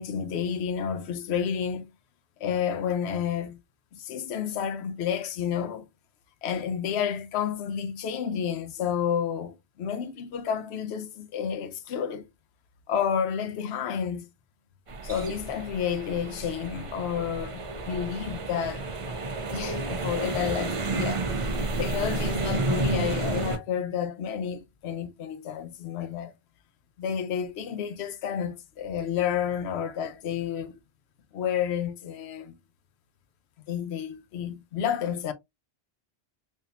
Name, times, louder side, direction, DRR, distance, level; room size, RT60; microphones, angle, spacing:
voice 1, 0.0-1.9 2.4-3.6 3.9-5.9 6.4-12.3 12.9-14.3 15.0-18.9 19.5-26.3 27.0-30.7 31.3-32.6 33.7-35.3, left 8 dB, 80° left, 0.9 m, -30 dB
sound 1, 14.9-23.6, right 2 dB, 40° right, 0.5 m, -31 dB
3.6 x 2.6 x 2.7 m
omnidirectional pair, 1.1 m